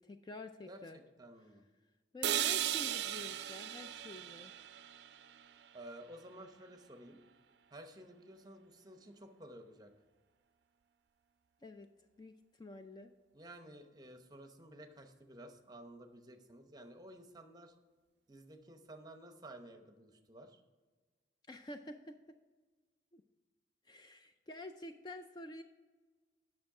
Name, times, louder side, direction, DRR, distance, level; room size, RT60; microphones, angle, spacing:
voice 1, 0.0-1.0 2.1-4.5 11.6-11.9 12.2-13.1 21.5-22.1 23.1-23.2 23.9-25.6, left 2 dB, 25° left, 7 dB, 0.3 m, -49 dB
voice 2, 0.7-1.6 5.7-7.2 7.7-9.9 13.3-17.7 18.3-20.6, right 1 dB, 20° right, 6 dB, 0.7 m, -53 dB
sound 1, 2.2-6.2, right 11 dB, 60° right, 0.4 m, -38 dB
8.8 x 6.0 x 4.8 m, 1.4 s
head